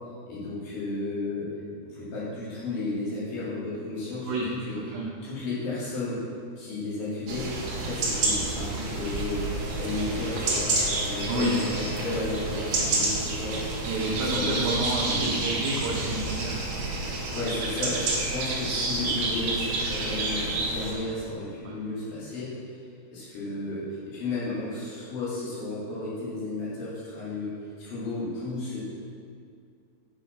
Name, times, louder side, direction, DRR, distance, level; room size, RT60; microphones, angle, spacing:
voice 1, 0.3-1.5 1.9-4.3 4.7-4.8 5.2-6.2 6.6-9.4 9.7-10.7 11.0-13.6 14.2-15.4 17.3-22.5 23.1-27.5 27.8-28.8, left 2 dB, 60° left, -9 dB, 4.4 m, -33 dB
voice 2, 4.8-5.1 11.3-11.5 13.9-16.6 21.6-21.8, right 2 dB, 90° right, -3 dB, 1.7 m, -29 dB
sound 1, 7.3-20.9, right 2 dB, 55° right, 2.4 m, -29 dB
Wind instrument woodwind instrument, 9.4-13.0, left 4 dB, 80° left, 2.8 m, -40 dB
8.5 x 6.2 x 5.8 m, 2.3 s
omnidirectional pair, 4.8 m